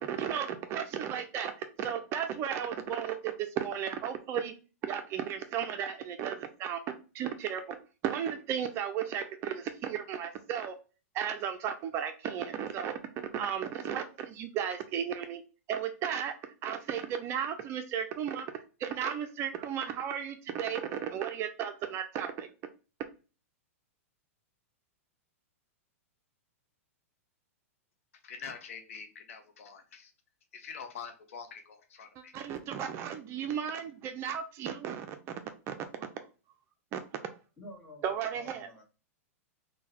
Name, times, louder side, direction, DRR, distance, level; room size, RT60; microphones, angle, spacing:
voice 1, 0.0-4.5 4.8-6.8 7.1-10.8 11.1-13.0 13.3-15.4 15.7-16.3 16.6-18.5 18.8-22.5 32.3-35.2 35.7-35.9 36.9-37.0 38.0-38.7, right 8 dB, 35° right, 7 dB, 0.4 m, -34 dB
voice 2, 28.1-30.1 30.5-32.3, left 6 dB, 70° left, 6 dB, 0.6 m, -45 dB
voice 3, 37.6-38.8, left 1 dB, 10° left, -2 dB, 1.4 m, -50 dB
3.6 x 2.1 x 2.8 m, 0.34 s
hypercardioid pair, 105°, 8 cm